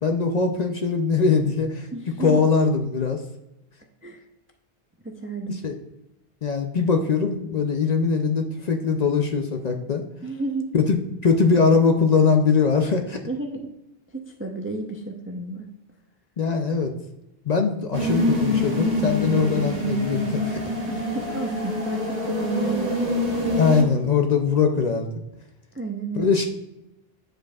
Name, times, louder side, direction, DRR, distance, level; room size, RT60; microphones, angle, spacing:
voice 1, 0.0-1.9 2.2-3.2 5.5-5.8 6.4-10.0 10.7-13.2 16.4-16.9 17.5-20.6 23.5-25.1 26.2-26.5, left 5 dB, 50° left, 4 dB, 0.6 m, -21 dB
voice 2, 1.9-2.4 4.0-4.2 5.0-5.6 10.2-10.7 13.3-13.7 14.1-15.7 20.9-22.9 25.7-26.4, right 3 dB, 20° right, 3 dB, 0.4 m, -31 dB
sound 1, 17.9-23.8, left 1 dB, 40° right, 1.3 m, -25 dB
8.8 x 5.0 x 2.3 m, 0.90 s
omnidirectional pair, 1.0 m